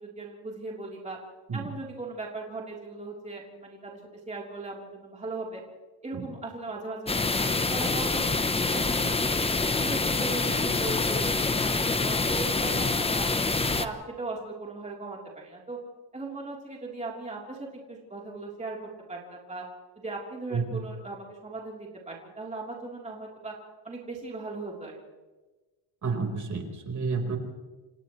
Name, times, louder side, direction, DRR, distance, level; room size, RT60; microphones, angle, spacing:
voice 1, 0.0-1.2 1.5-4.0 4.3-5.6 6.0-9.5 9.8-11.3 11.6-13.3 13.5-15.8 16.1-18.8 19.1-19.6 20.0-23.5 23.8-25.0, right 3 dB, 15° right, -3 dB, 3.6 m, -38 dB
sound 1, 7.1-13.9, left 3 dB, 10° left, 0.8 m, -26 dB
voice 2, 20.5-20.8 26.0-27.4, right 4 dB, 35° right, 2 dB, 4.3 m, -30 dB
29.0 x 28.5 x 3.2 m, 1.2 s
cardioid pair, 160°, 49 cm